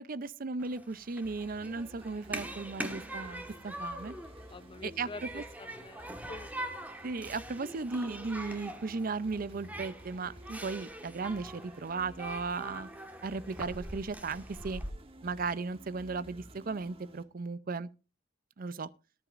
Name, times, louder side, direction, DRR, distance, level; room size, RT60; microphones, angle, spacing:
voice 1, 0.0-4.1 4.8-5.4 7.0-12.9 13.2-14.8 15.2-17.9 18.6-18.9, right 4 dB, 50° right, 0.6 m, -36 dB
Human group actions, 0.6-14.9, right 1 dB, 10° right, 1.5 m, -43 dB
sound 1, 1.2-17.2, right 1 dB, 30° right, 1.5 m, -53 dB
voice 2, 4.5-6.7, left 3 dB, 25° left, 0.5 m, -47 dB
18.5 x 11.0 x 2.5 m
head